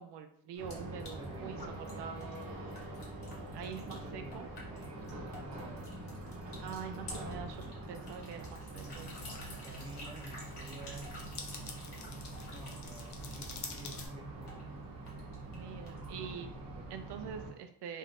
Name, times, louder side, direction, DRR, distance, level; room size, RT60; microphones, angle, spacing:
voice 1, 0.0-2.3 3.5-4.5 6.6-9.1 15.5-16.5 16.9-18.0, right 7 dB, 75° right, 7 dB, 0.5 m, -45 dB
sound 1, 0.5-16.2, left 2 dB, 70° left, 1.2 m, -52 dB
voice 2, 0.6-1.7 3.6-5.9 9.5-11.1 12.4-14.5 16.0-16.9, right 2 dB, 15° right, 2 dB, 0.3 m, -53 dB
sound 2, 0.6-17.5, right 2 dB, 55° right, 0.8 m, -45 dB
sound 3, 8.7-14.1, left 4 dB, 45° left, 0.5 m, -48 dB
2.6 x 2.4 x 3.5 m, 0.62 s
wide cardioid pair, 150°, 41 cm